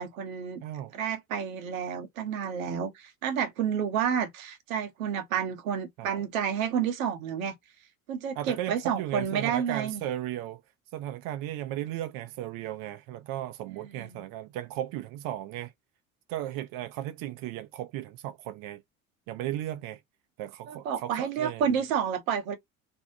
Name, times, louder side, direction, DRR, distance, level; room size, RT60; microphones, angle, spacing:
voice 1, 0.0-0.6 0.9-7.6 8.1-10.0 13.8-14.2 20.7-22.6, right 8 dB, 80° right, 0.9 m, -30 dB
voice 2, 0.6-0.9 6.0-6.2 8.3-10.6 10.9-15.7 16.3-18.8 19.3-20.0 20.4-21.8, right 13 dB, 55° right, 0.5 m, -36 dB
2.6 x 2.1 x 2.6 m
hypercardioid pair, 70°, 41 cm